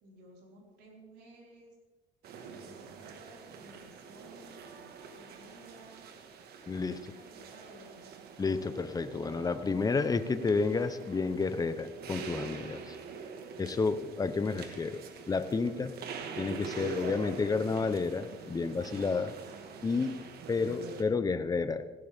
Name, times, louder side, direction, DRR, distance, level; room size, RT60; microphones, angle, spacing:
voice 1, 0.0-1.7 2.3-6.1 6.9-8.1, right 1 dB, 85° right, -2 dB, 5.1 m, -56 dB
sound 1, 2.2-21.0, right 5 dB, 70° right, 1.7 m, -45 dB
voice 2, 6.7-7.0 8.4-13.0 13.6-15.0 15.3-15.9 16.4-19.3 19.8-20.2 20.5-21.9, left 4 dB, 20° left, 11 dB, 0.8 m, -30 dB
17.5 x 16.0 x 3.6 m, 1.3 s
cardioid pair, 110°, 17 cm